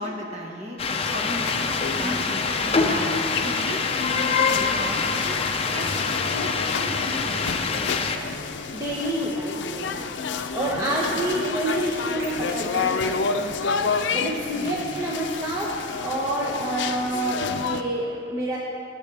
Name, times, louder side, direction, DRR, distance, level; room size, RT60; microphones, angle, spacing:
voice 1, 0.0-5.4 5.7-8.4 10.7-11.3 14.1-15.1, equal, 35° right, -1 dB, 1.6 m, -36 dB
sound 1, 0.8-8.2, left 4 dB, 35° left, 0.6 m, -25 dB
sound 2, 1.3-17.8, left 5 dB, 85° left, 0.5 m, -30 dB
voice 2, 8.7-10.0 10.5-18.6, right 1 dB, 20° right, -5 dB, 1.1 m, -28 dB
Clapping, 11.1-16.4, right 1 dB, 60° right, 2.5 m, -42 dB
20.5 x 8.0 x 3.4 m, 2.6 s
head